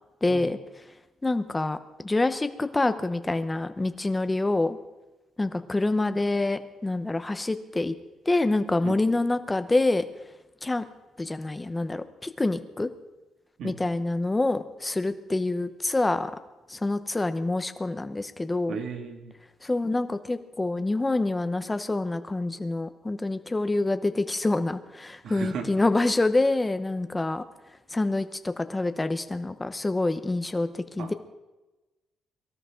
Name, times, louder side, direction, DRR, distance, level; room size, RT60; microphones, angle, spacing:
voice 1, 0.2-0.6 1.2-4.8 5.4-7.9 8.3-10.0 10.6-10.8 11.2-12.9 13.6-16.3 16.7-18.8 19.6-27.4 27.9-31.1, left 2 dB, 10° left, 10 dB, 0.8 m, -26 dB
voice 2, 18.7-19.3 25.2-25.7 31.0-31.1, right 6 dB, 60° right, 4 dB, 2.2 m, -35 dB
23.5 x 13.0 x 3.8 m, 1.1 s
cardioid pair, 170°, 0 cm